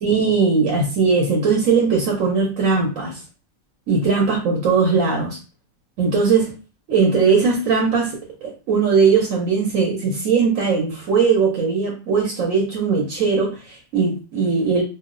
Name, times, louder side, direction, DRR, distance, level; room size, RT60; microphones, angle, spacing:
voice 1, 0.0-3.2 3.9-5.4 6.0-6.5 6.9-14.8, right 5 dB, 75° right, -1 dB, 1.1 m, -19 dB
2.6 x 2.1 x 3.7 m, 0.34 s
omnidirectional pair, 1.4 m